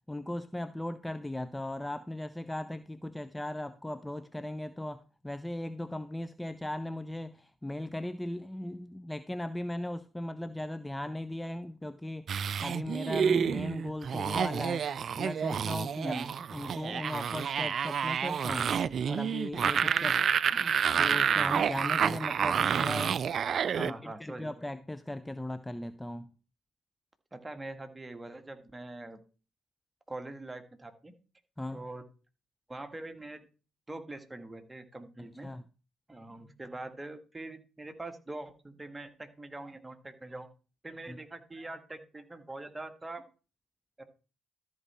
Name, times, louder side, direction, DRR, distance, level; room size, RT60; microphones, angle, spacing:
voice 1, 0.1-12.3 12.6-14.9 15.2-16.2 16.5-18.7 19.1-20.2 20.5-23.2 23.8-26.3 31.6-31.8 35.2-35.6 41.1-41.2, left 1 dB, 10° left, 0.6 m, -38 dB
sound 1, 12.3-23.9, right 7 dB, 55° right, 0.3 m, -29 dB
voice 2, 23.7-24.6 27.3-29.2 30.1-31.1 31.7-32.0 32.7-33.4 33.9-35.5 36.1-40.5 40.8-43.2 44.0-44.1, right 2 dB, 20° right, 1.7 m, -43 dB
13.5 x 4.7 x 4.3 m
hypercardioid pair, 45°, 0 cm